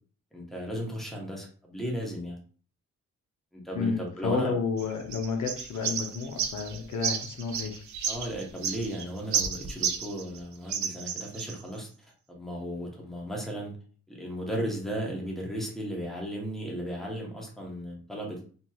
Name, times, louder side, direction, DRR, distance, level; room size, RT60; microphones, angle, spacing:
voice 1, 0.3-2.4 3.5-4.5 8.1-11.9 12.3-13.7 14.1-18.4, equal, ahead, -2 dB, 0.8 m, -35 dB
voice 2, 3.7-7.8, left 5 dB, 85° left, 3 dB, 0.7 m, -31 dB
sound 1, 4.8-10.4 10.7-11.6, right 7 dB, 70° right, 0.5 m, -32 dB
2.9 x 2.8 x 2.3 m, 0.42 s
wide cardioid pair, 125°, 30 cm